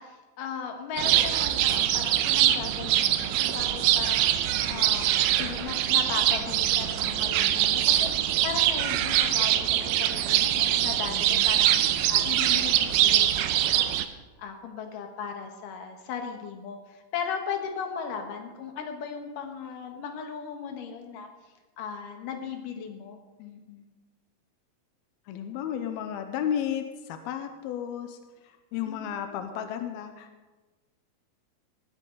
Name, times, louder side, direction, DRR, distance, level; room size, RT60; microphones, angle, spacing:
voice 1, 0.0-4.4 4.7-11.8 12.1-13.9 14.4-21.3 21.8-23.9 28.8-29.4, left 6 dB, 65° left, 4 dB, 3.0 m, -37 dB
sound 1, 1.0-14.1, right 12 dB, 85° right, 2.5 m, -23 dB
voice 2, 10.8-11.5 11.8-12.2 25.3-28.2 28.4-30.3, left 9 dB, 90° left, 7 dB, 2.8 m, -34 dB
19.0 x 14.0 x 4.0 m, 1.2 s
omnidirectional pair, 4.3 m